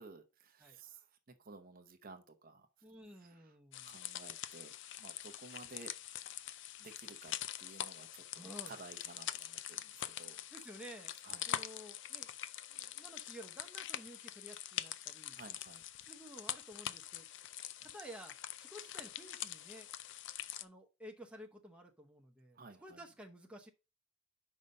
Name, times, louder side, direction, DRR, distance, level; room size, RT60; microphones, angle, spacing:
voice 1, 0.0-2.7 3.2-3.5 3.8-5.9 6.8-7.3 7.6-10.4 11.2-11.4 15.3-15.8 22.5-23.0, right 3 dB, 40° right, 0.7 m, -55 dB
voice 2, 2.8-4.0 8.4-8.7 10.5-11.1 11.5-12.3 12.7-15.4 16.1-17.3 17.8-19.9 20.6-23.7, equal, 5° right, 0.8 m, -53 dB
sound 1, 3.7-20.6, left 11 dB, 55° left, 0.4 m, -44 dB
5.5 x 4.8 x 5.3 m
head